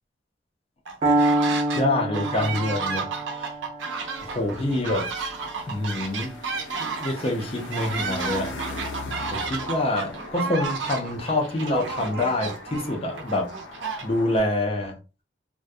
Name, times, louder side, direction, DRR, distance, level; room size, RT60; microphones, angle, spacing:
sound 1, 0.9-1.8 2.1-14.4, right 4 dB, 80° right, 0.6 m, -32 dB
Piano, 1.0-8.9, right 2 dB, 30° right, 0.5 m, -29 dB
voice 1, 1.8-3.5 4.2-5.3 5.7-6.4 6.8-8.6 9.1-13.5 14.0-15.0, left 1 dB, 30° left, 0.6 m, -26 dB
sound 2, 4.1-14.4, left 2 dB, 75° left, 0.4 m, -40 dB
2.2 x 2.1 x 2.6 m
head